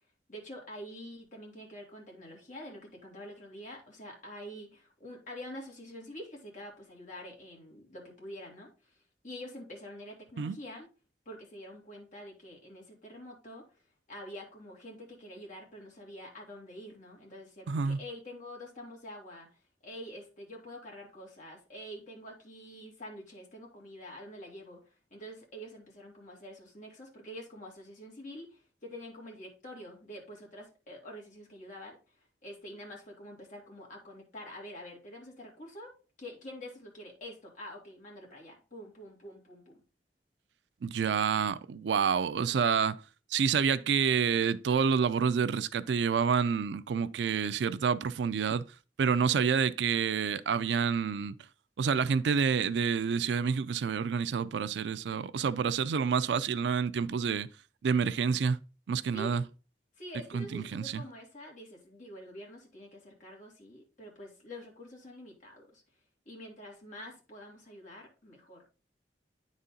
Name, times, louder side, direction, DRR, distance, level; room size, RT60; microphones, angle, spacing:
voice 1, 0.3-9.0 9.2-10.9 11.3-13.6 14.1-19.5 19.8-32.0 32.4-35.9 36.2-39.8 59.1-59.3 60.0-65.8 66.3-68.7, left 1 dB, 45° left, 2.5 m, -46 dB
voice 2, 17.7-18.0 40.8-43.0 43.3-48.7 49.0-51.4 51.8-57.5 57.8-58.6 58.9-59.4 60.3-61.0, right 6 dB, 80° right, 0.4 m, -28 dB
9.6 x 4.2 x 3.8 m
head